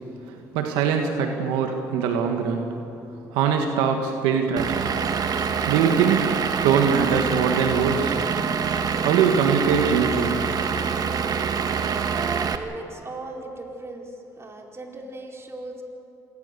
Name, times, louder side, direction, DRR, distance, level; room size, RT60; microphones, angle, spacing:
voice 1, 0.2-2.7 3.3-4.9 5.7-8.2 9.0-10.3, right 6 dB, 90° right, 4 dB, 1.6 m, -22 dB
Vehicle / Engine, 4.6-12.6, right 6 dB, 55° right, 1.4 m, -25 dB
voice 2, 11.8-15.8, right 3 dB, 35° right, 1 dB, 4.7 m, -37 dB
26.5 x 21.0 x 6.9 m, 3.0 s
supercardioid pair, 65°, 8 cm